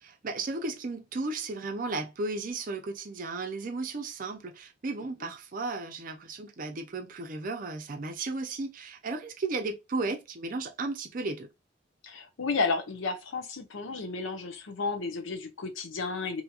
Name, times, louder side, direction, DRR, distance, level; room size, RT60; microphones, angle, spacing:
voice 1, 0.0-11.5, right 3 dB, 45° right, 0.5 m, -34 dB
voice 2, 12.0-16.4, left 4 dB, 85° left, 0.7 m, -32 dB
2.8 x 2.7 x 2.3 m
head